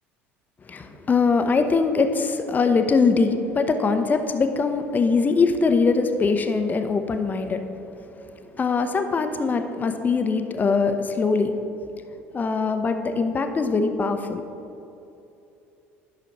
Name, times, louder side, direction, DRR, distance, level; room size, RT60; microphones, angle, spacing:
voice 1, 0.7-7.6 8.5-11.5 12.3-14.4, left 4 dB, 25° left, 7 dB, 0.6 m, -22 dB
11.5 x 6.0 x 3.0 m, 2.8 s
figure-of-eight pair, 60°, 7 cm